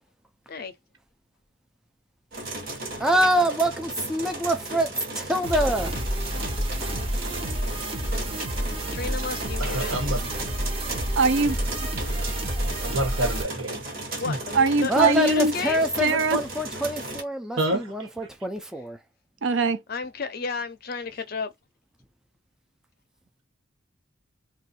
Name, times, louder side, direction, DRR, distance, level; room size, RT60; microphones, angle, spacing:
sound 1, 2.3-17.2, right 2 dB, 50° right, 1.1 m, -36 dB
voice 1, 3.0-6.0 14.9-19.0, right 1 dB, 5° right, 0.3 m, -25 dB
sound 2, 5.4-13.4, right 1 dB, 30° right, 0.7 m, -29 dB
voice 2, 8.9-10.0 14.2-15.9 19.9-21.5, left 5 dB, 50° left, 0.5 m, -32 dB
voice 3, 9.6-10.4 12.8-13.8 14.2-14.4 17.6-18.1, right 1 dB, 90° right, 1.2 m, -28 dB
voice 4, 11.2-11.9 14.5-15.5 16.0-16.4 19.4-19.8, right 3 dB, 70° right, 0.5 m, -22 dB
2.6 x 2.3 x 4.0 m
head